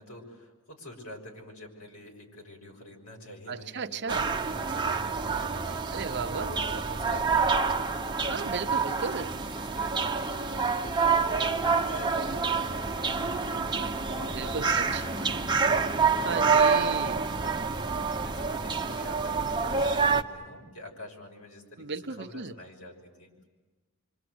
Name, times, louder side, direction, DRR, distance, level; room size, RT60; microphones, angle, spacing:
voice 1, 0.0-6.1 6.3-8.9 9.5-23.5, left 1 dB, 80° left, 1 dB, 6.4 m, -47 dB
voice 2, 3.5-4.3 5.9-6.5 8.3-9.3 14.2-15.0 16.2-17.2 21.8-22.5, right 5 dB, 50° right, 8 dB, 0.8 m, -35 dB
sound 1, 4.1-20.2, right 5 dB, 20° right, 1.0 m, -27 dB
27.5 x 25.5 x 7.9 m, 1.2 s
head